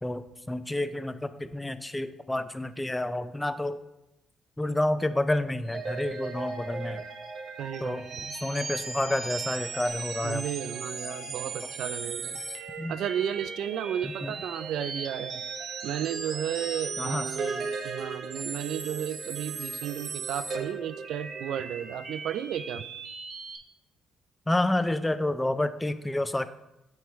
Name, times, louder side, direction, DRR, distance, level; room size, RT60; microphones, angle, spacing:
voice 1, 0.0-3.8 4.6-7.0 7.8-8.0 8.4-10.4 12.8-12.9 14.0-14.3 17.0-17.3 24.5-26.5, left 1 dB, 10° left, 12 dB, 0.4 m, -29 dB
sound 1, 5.7-23.6, right 4 dB, 60° right, 0.8 m, -37 dB
voice 2, 7.6-8.3 10.2-12.4 12.9-15.4 15.8-22.8, right 10 dB, 80° right, 14 dB, 0.3 m, -33 dB
8.9 x 3.2 x 3.5 m, 0.93 s
cardioid pair, 90°, 0 cm